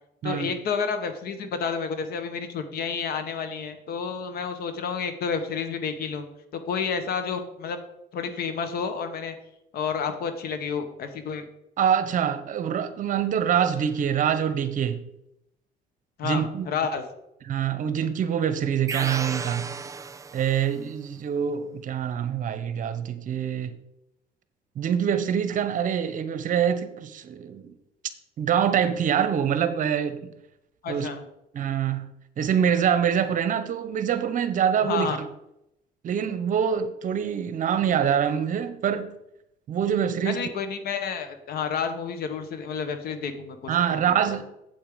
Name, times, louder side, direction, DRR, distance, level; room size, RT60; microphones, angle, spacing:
voice 1, 0.2-6.3 6.5-7.8 8.1-9.3 9.7-11.4 16.2-17.0 30.8-31.2 34.8-35.2 40.2-43.8 44.1-44.2, left 6 dB, 65° left, 1.5 m, -30 dB
voice 2, 11.8-15.0 16.2-16.7 17.5-19.7 20.3-23.8 24.8-27.7 28.4-30.3 30.9-31.1 31.5-32.1 32.4-35.3 36.0-39.1 39.7-40.5 43.7-44.4, right 8 dB, 50° right, 1.0 m, -25 dB
sound 1, 18.9-20.8, right 5 dB, 20° right, 0.4 m, -34 dB
8.6 x 7.8 x 5.1 m
cardioid pair, 110°, 17 cm